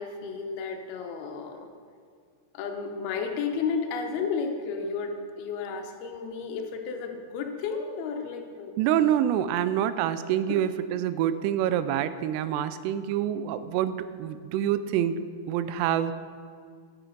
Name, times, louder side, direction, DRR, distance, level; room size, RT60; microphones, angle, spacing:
voice 1, 0.0-1.7 2.5-8.7 9.9-10.0 10.5-10.6, left 5 dB, 75° left, 4 dB, 2.6 m, -32 dB
voice 2, 8.8-15.2 15.5-16.1, right 10 dB, 85° right, 13 dB, 2.6 m, -26 dB
10.0 x 10.0 x 3.9 m, 2.1 s
omnidirectional pair, 4.8 m